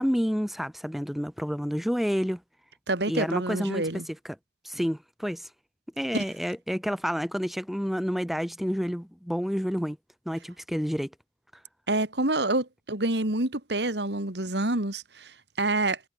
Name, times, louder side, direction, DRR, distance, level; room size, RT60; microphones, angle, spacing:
voice 1, 0.0-2.4 3.1-4.3 4.6-5.5 6.0-10.0 10.2-11.1, equal, ahead, 4.6 m, -29 dB
voice 2, 2.9-4.1 6.1-6.2 11.9-16.0, right 2 dB, 80° right, 3.0 m, -27 dB
head